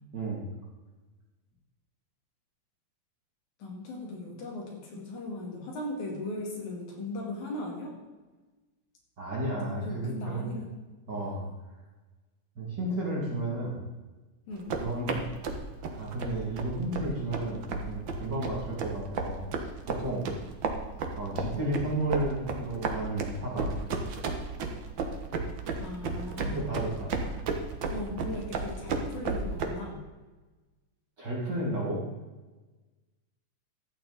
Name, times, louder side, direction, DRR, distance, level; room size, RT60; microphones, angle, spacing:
voice 1, 0.1-0.4 9.2-10.5 11.1-11.5 12.6-13.8 14.7-15.2 15.8-20.3 21.2-23.8 26.4-27.3 31.2-32.0, right 1 dB, 35° right, -5 dB, 2.7 m, -33 dB
voice 2, 3.6-7.9 9.7-10.7 14.5-14.7 25.8-26.7 27.9-30.0, left 2 dB, 65° left, -2 dB, 3.5 m, -38 dB
sound 1, 14.5-29.7, right 4 dB, 85° right, 1.0 m, -33 dB
13.0 x 8.9 x 4.1 m, 1.2 s
omnidirectional pair, 3.8 m